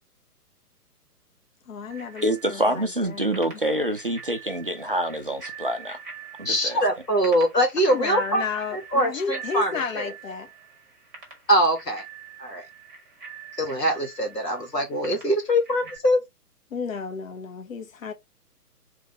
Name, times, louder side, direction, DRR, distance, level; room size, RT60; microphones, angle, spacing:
voice 1, 1.7-3.4 7.9-10.5 16.7-18.1, left 5 dB, 55° left, 1.1 m, -32 dB
Bicycle bell, 1.9-16.0, right 6 dB, 10° right, 0.9 m, -44 dB
voice 2, 2.2-6.0 6.4-6.8, right 1 dB, 40° right, 0.4 m, -26 dB
voice 3, 6.4-8.4 8.7-10.1 11.5-12.0 12.4-12.6 13.6-16.2, equal, 80° left, 2.2 m, -23 dB
3.7 x 3.1 x 3.5 m
figure-of-eight pair, 135°, 48 cm